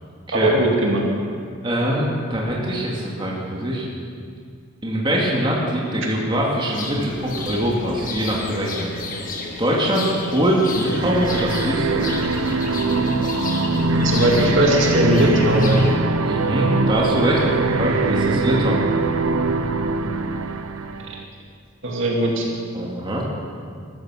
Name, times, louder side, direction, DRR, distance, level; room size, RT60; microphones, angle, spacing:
voice 1, 0.3-1.0 14.0-15.9 20.0-20.1 21.8-22.5, right 1 dB, 60° right, -1 dB, 2.4 m, -19 dB
voice 2, 1.6-3.9 4.8-8.9 9.6-12.2 16.3-18.8 22.7-23.2, equal, 20° right, -4 dB, 2.4 m, -23 dB
sound 1, 6.7-15.9, left 3 dB, 40° left, 1.7 m, -32 dB
sound 2, 10.7-21.2, right 2 dB, 75° right, 0.8 m, -22 dB
14.5 x 13.5 x 6.5 m, 2.2 s
head